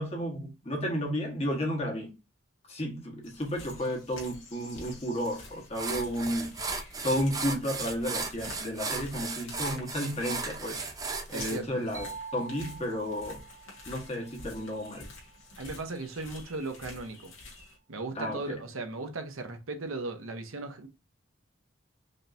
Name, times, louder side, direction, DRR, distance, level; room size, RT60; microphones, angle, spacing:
voice 1, 0.0-2.1 2.7-6.6 7.0-10.8 11.3-13.4 13.8-15.1 18.1-18.6, equal, 30° left, 1.3 m, -32 dB
sound 1, 3.2-17.8, left 2 dB, 75° left, 1.9 m, -49 dB
sound 2, 5.2-5.4 5.7-11.6, right 4 dB, 15° right, 0.5 m, -36 dB
voice 2, 11.3-11.9 15.6-17.3 17.9-20.9, right 3 dB, 90° right, 0.9 m, -37 dB
sound 3, 11.9-15.6, right 5 dB, 40° right, 1.5 m, -47 dB
5.1 x 2.8 x 2.5 m
head